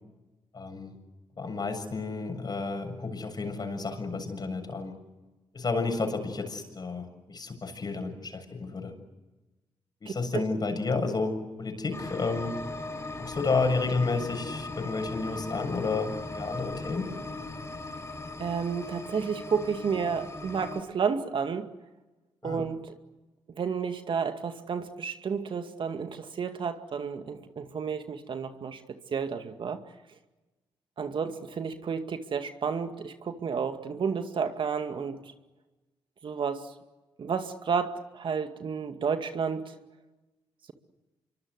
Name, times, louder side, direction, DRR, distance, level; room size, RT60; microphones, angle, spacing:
voice 1, 0.5-0.9 1.4-4.9 5.5-8.9 10.0-12.6 13.2-17.1 22.4-22.6, left 3 dB, 45° left, 6 dB, 7.1 m, -31 dB
sound 1, 11.9-20.8, left 2 dB, 30° left, 6.3 m, -38 dB
voice 2, 18.4-21.7 22.4-22.8 23.6-28.8 29.1-29.8 31.0-35.2 36.2-36.7 37.2-39.7, right 6 dB, 60° right, 7 dB, 2.3 m, -31 dB
26.5 x 24.0 x 8.2 m, 1.1 s
supercardioid pair, 55°, 10 cm